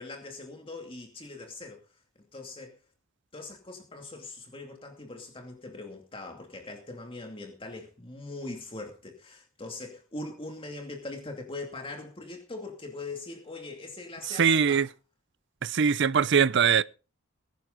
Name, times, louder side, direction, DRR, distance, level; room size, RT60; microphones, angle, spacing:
voice 1, 0.0-1.8 2.3-2.7 3.3-14.9, left 2 dB, 25° left, 2.5 m, -41 dB
voice 2, 14.4-14.9 15.6-16.8, right 6 dB, 60° right, 0.6 m, -22 dB
21.0 x 10.5 x 3.9 m
head